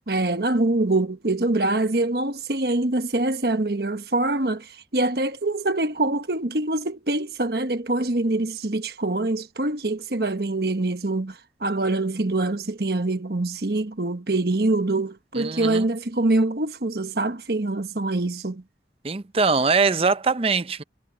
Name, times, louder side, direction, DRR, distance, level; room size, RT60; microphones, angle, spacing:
voice 1, 0.1-18.6, right 2 dB, 60° right, 1.3 m, -24 dB
voice 2, 15.3-15.9 19.0-20.8, right 4 dB, 35° right, 0.6 m, -22 dB
head